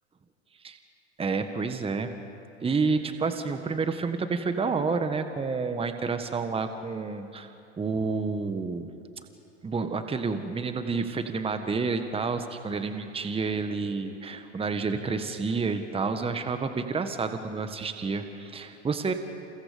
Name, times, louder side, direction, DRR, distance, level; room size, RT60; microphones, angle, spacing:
voice 1, 1.2-2.1 2.6-8.9 9.6-19.1, right 4 dB, 15° right, 8 dB, 1.5 m, -29 dB
29.5 x 29.0 x 5.2 m, 2.9 s
hypercardioid pair, 90°, 36 cm